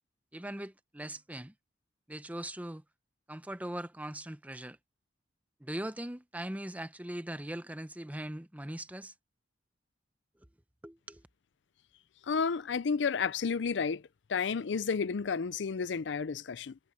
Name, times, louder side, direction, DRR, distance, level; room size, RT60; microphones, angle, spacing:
voice 1, 0.3-1.5 2.1-2.8 3.3-4.8 5.6-9.1 10.8-11.2, right 1 dB, 10° right, 0.8 m, -40 dB
voice 2, 12.3-14.0 14.3-16.8, left 5 dB, 70° left, 0.5 m, -31 dB
head